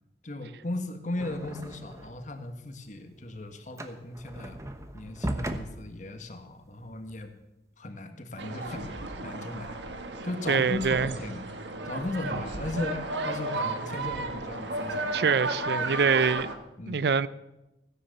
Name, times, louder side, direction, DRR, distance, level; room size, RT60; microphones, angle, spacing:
voice 1, 0.2-4.6 4.9-7.3 7.8-9.8 10.2-11.5 11.8-15.2 15.7-15.9 16.8-17.0, left 2 dB, 45° left, 1.5 m, -37 dB
sound 1, 1.2-2.3 2.7-7.2, right 1 dB, 15° right, 1.0 m, -38 dB
sound 2, 8.4-16.6, right 2 dB, 80° right, 1.4 m, -34 dB
voice 2, 10.5-11.1 15.1-16.5 16.9-17.3, right 5 dB, 65° right, 0.5 m, -24 dB
16.0 x 10.0 x 6.6 m
head